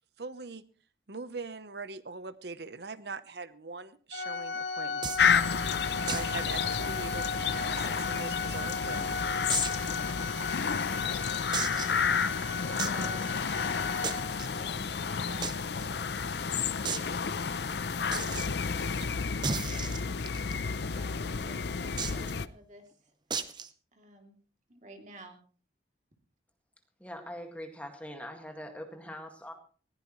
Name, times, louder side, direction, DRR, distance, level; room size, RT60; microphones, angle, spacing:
voice 1, 0.2-0.6 1.1-5.1 6.1-9.2, right 4 dB, 65° right, 14 dB, 0.9 m, -42 dB
Organ, 4.1-14.7, left 4 dB, 85° left, 2.2 m, -36 dB
sound 1, 5.0-5.3 6.1-6.4 6.6-6.7 7.1-7.2 7.9-8.6 9.5-9.9 10.4-10.5 11.5-12.0 12.8-13.0 14.0-14.5 15.4-15.5 15.8-15.9 16.2-16.3 16.8-17.1 18.1-18.5 19.4-20.5 22.0-22.3 23.3-23.7, right 5 dB, 25° right, 0.8 m, -34 dB
sound 2, 5.2-22.5, left 6 dB, 65° left, 0.6 m, -31 dB
voice 2, 11.9-14.1 14.4-16.0 16.4-18.5 19.6-20.5 20.7-23.6 23.9-24.4 24.7-25.4, right 1 dB, 40° right, 3 dB, 2.9 m, -53 dB
voice 3, 27.0-29.5, equal, 5° left, 4 dB, 1.9 m, -42 dB
20.0 x 15.5 x 3.2 m, 0.41 s
head